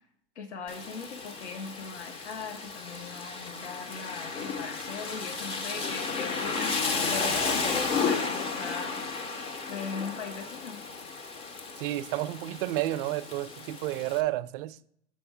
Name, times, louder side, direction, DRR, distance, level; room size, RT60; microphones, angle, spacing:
voice 1, 0.4-6.7 7.0-9.0 9.7-10.8, left 5 dB, 80° left, 1.0 m, -39 dB
Rain, 0.7-14.2, left 4 dB, 15° left, 0.4 m, -33 dB
voice 2, 11.8-14.8, right 16 dB, 50° right, 0.4 m, -31 dB
6.5 x 4.4 x 4.5 m
hypercardioid pair, 120°, 34 cm